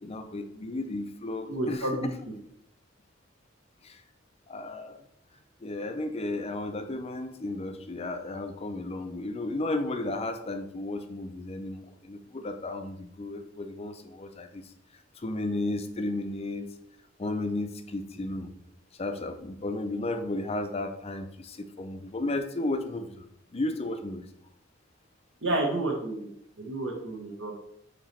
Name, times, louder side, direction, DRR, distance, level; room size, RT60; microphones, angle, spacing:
voice 1, 0.0-1.9 3.8-4.0 4.5-5.0 5.6-14.7 15.1-16.7 17.2-18.5 19.0-23.3 23.5-24.3, left 2 dB, 30° left, 8 dB, 0.5 m, -33 dB
voice 2, 1.5-2.0 25.4-26.3 26.6-27.5, right 2 dB, 65° right, 0 dB, 1.1 m, -30 dB
8.4 x 3.0 x 4.3 m, 0.71 s
head